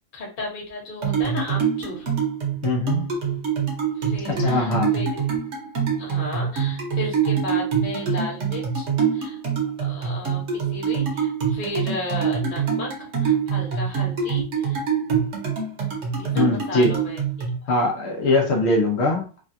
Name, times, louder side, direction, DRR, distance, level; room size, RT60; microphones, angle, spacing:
voice 1, 0.1-2.1 3.9-5.1 6.0-8.9 9.1-9.4 9.8-14.8 16.1-17.2, left 2 dB, 35° left, -2 dB, 0.9 m, -34 dB
sound 1, 1.0-17.5, right 7 dB, 50° right, 1.0 m, -25 dB
voice 2, 2.6-3.0 4.3-4.9 16.3-17.0 17.7-19.4, left 2 dB, 85° left, 0 dB, 0.5 m, -21 dB
3.2 x 2.3 x 2.6 m, 0.35 s
omnidirectional pair, 2.0 m